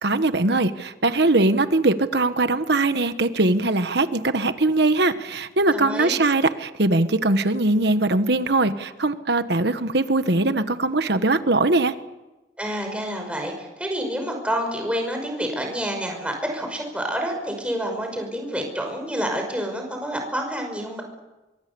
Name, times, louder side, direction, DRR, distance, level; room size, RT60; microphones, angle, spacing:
voice 1, 0.0-11.9, right 2 dB, 60° right, 11 dB, 1.3 m, -21 dB
voice 2, 5.7-6.2 12.6-21.0, equal, 5° right, 3 dB, 5.7 m, -28 dB
25.0 x 23.5 x 7.0 m, 1.1 s
head